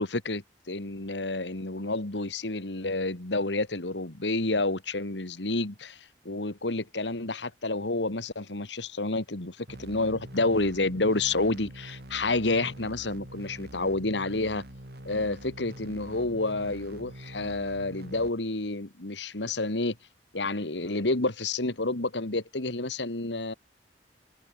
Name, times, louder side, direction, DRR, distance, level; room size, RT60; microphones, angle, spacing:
voice 1, 0.0-14.6 15.0-20.0 20.3-23.5, left 2 dB, 80° left, 2.2 m, -29 dB
sound 1, 9.7-18.3, right 1 dB, 65° right, 6.0 m, -45 dB
open air
head